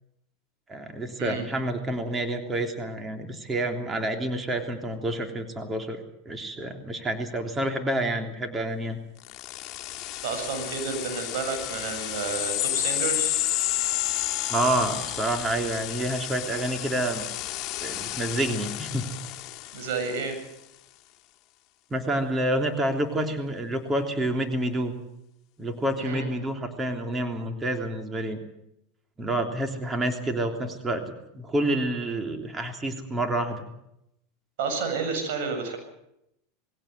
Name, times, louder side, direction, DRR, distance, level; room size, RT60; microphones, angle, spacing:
voice 1, 0.7-9.0 14.5-17.2 17.8-19.1 21.9-24.9 25.6-28.4 29.2-31.0 31.3-33.6, right 1 dB, 20° right, 5 dB, 3.3 m, -28 dB
sound 1, 9.2-20.3, left 15 dB, 50° left, 1.8 m, -31 dB
voice 2, 10.2-13.4 19.7-20.4 26.0-26.3 34.6-35.8, right 5 dB, 70° right, 4 dB, 7.8 m, -30 dB
20.5 x 17.0 x 9.4 m, 0.82 s
hypercardioid pair, 100°, 0 cm